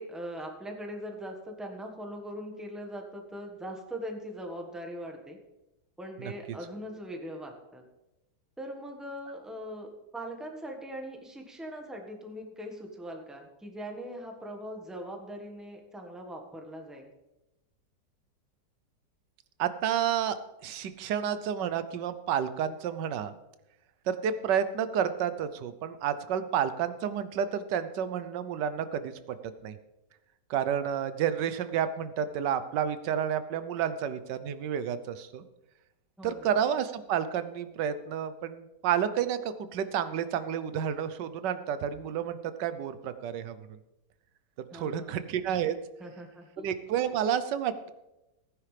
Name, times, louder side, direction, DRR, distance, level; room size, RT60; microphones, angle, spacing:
voice 1, 0.0-5.4 6.0-7.8 8.6-9.9 10.1-17.1 36.2-36.5 44.7-45.2 46.0-46.7, equal, ahead, 2 dB, 1.2 m, -41 dB
voice 2, 19.6-20.4 20.6-23.3 24.1-29.4 29.6-29.7 30.5-35.4 36.2-43.6 44.7-45.8 46.6-47.9, right 8 dB, 90° right, 12 dB, 1.4 m, -30 dB
16.0 x 9.8 x 3.3 m, 0.96 s
omnidirectional pair, 1.8 m